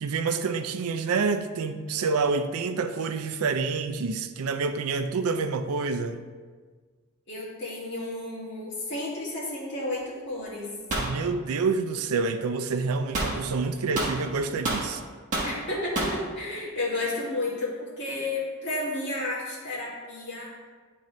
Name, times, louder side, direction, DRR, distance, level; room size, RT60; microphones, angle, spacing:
voice 1, 0.0-6.2 11.0-15.0, right 4 dB, 85° right, 9 dB, 0.4 m, -28 dB
voice 2, 7.3-10.7 15.4-20.5, left 2 dB, 55° left, -6 dB, 1.9 m, -32 dB
sound 1, 10.9-11.1 13.1-13.4 13.9-14.9 15.3-15.6 15.9-16.2, right 2 dB, 35° right, 1.2 m, -28 dB
10.5 x 3.8 x 3.1 m, 1.5 s
head